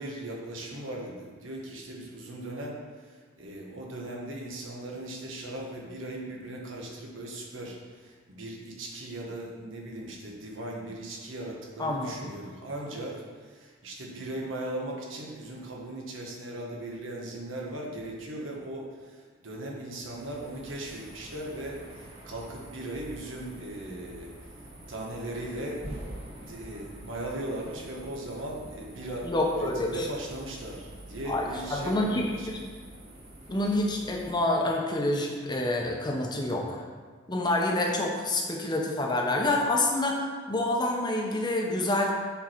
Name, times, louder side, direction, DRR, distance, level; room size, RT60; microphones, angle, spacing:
voice 1, 0.0-24.3 24.9-25.8 26.4-32.6, right 1 dB, 80° right, -1 dB, 1.4 m, -38 dB
voice 2, 11.8-12.1 29.2-30.1 31.3-32.6 33.5-36.8 37.3-42.1, left 1 dB, 20° left, 0 dB, 0.9 m, -27 dB
sound 1, 19.9-34.3, right 1 dB, 30° right, 1.6 m, -46 dB
7.3 x 4.5 x 4.5 m, 1.5 s
head